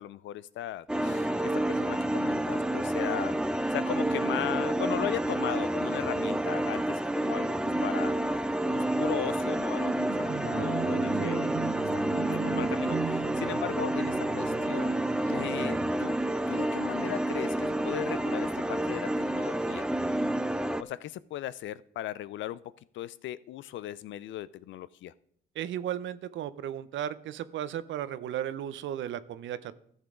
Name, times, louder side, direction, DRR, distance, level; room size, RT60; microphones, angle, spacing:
voice 1, 0.0-3.3 3.7-7.6 7.8-8.2 8.7-15.0 15.3-16.2 16.5-19.9 20.8-22.6 22.9-25.1, left 13 dB, 70° left, 18 dB, 0.4 m, -37 dB
sound 1, 0.9-20.8, right 1 dB, 5° right, 0.4 m, -29 dB
sound 2, 9.9-16.2, right 7 dB, 45° right, 0.9 m, -37 dB
voice 2, 25.6-29.8, right 10 dB, 70° right, 15 dB, 0.6 m, -35 dB
13.5 x 7.3 x 3.7 m, 0.64 s
cardioid pair, 90°, 20 cm